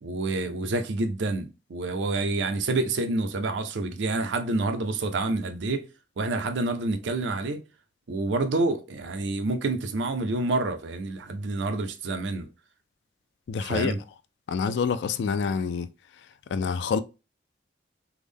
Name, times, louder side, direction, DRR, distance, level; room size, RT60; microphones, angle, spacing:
voice 1, 0.0-5.9 6.2-7.6 8.1-12.5 13.6-14.0, right 2 dB, 85° right, 0.5 m, -28 dB
voice 2, 13.5-13.9 14.5-15.9 16.5-17.0, left 6 dB, 70° left, 0.3 m, -27 dB
3.4 x 2.1 x 3.4 m
head